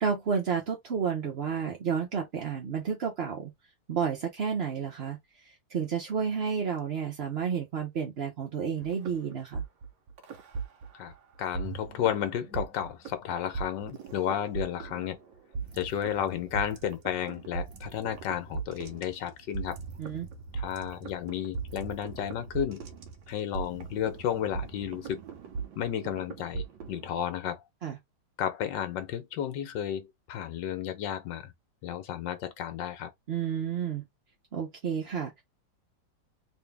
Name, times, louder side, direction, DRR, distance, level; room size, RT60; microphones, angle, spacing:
voice 1, 0.0-3.5 3.9-9.6 20.0-20.3 27.8-28.0 33.3-34.0 34.5-35.4, right 6 dB, 45° right, 0.8 m, -31 dB
sound 1, 8.8-11.1 11.5-27.2, right 5 dB, 90° right, 1.5 m, -39 dB
voice 2, 10.9-15.2 15.7-19.8 20.5-22.8 23.3-25.2 25.8-27.6 28.4-31.5 31.8-33.1, left 10 dB, 75° left, 1.5 m, -32 dB
3.7 x 2.7 x 3.4 m
omnidirectional pair, 2.0 m